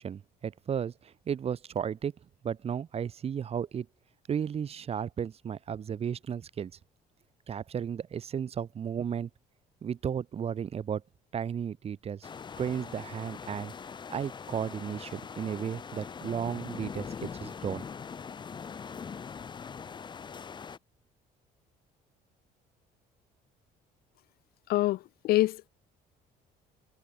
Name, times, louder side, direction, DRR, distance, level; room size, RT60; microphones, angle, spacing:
voice 1, 0.0-2.1 2.4-3.9 4.3-6.7 7.5-9.3 9.8-11.0 11.3-12.3 12.6-13.7 14.1-17.8, right 8 dB, 35° right, 0.8 m, -34 dB
sound 1, 12.2-20.8, left 6 dB, 25° left, 0.6 m, -42 dB
voice 2, 24.7-25.7, left 17 dB, 65° left, 0.4 m, -26 dB
cardioid pair, 110°, 17 cm